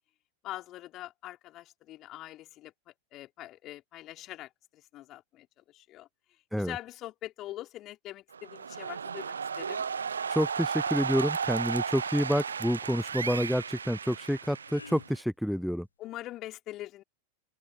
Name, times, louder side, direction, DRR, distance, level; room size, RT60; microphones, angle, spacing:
voice 1, 0.4-6.1 6.6-9.9 16.0-17.0, left 15 dB, 35° left, 4.1 m, -43 dB
sound 1, 8.3-15.2, right 6 dB, 70° right, 1.0 m, -34 dB
voice 2, 10.3-15.9, equal, ahead, 0.4 m, -28 dB
sound 2, 11.8-12.0 13.2-13.5 14.3-15.2 16.3-16.4, left 3 dB, 80° left, 1.1 m, -48 dB
figure-of-eight pair, 90°, 0 cm